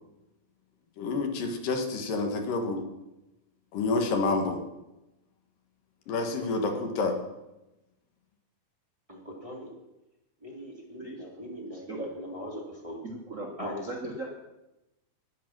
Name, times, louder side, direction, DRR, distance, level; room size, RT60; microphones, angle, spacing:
voice 1, 1.0-2.8 3.7-4.6 6.1-7.1, left 3 dB, 70° left, 4 dB, 3.1 m, -28 dB
voice 2, 6.2-6.8 9.1-9.7 10.4-13.0 13.6-13.7, equal, 10° right, -3 dB, 2.5 m, -41 dB
voice 3, 13.0-14.3, right 1 dB, 45° right, 0 dB, 1.0 m, -37 dB
12.5 x 10.5 x 6.0 m, 0.96 s
omnidirectional pair, 4.1 m